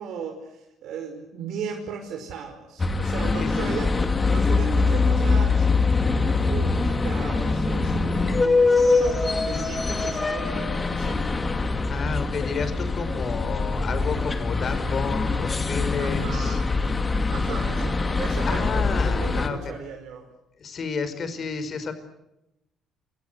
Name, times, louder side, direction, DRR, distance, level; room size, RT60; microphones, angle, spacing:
voice 1, 0.0-5.8 6.1-11.3 16.0-16.8 17.3-20.3, right 6 dB, 70° right, 3 dB, 5.2 m, -36 dB
sound 1, 2.8-19.5, left 3 dB, 20° left, 2.4 m, -23 dB
voice 2, 3.0-3.5 11.9-16.6 18.5-19.6 20.6-21.9, left 5 dB, 35° left, 10 dB, 5.2 m, -31 dB
27.5 x 25.0 x 8.1 m, 0.86 s
cardioid pair, 150°, 0 cm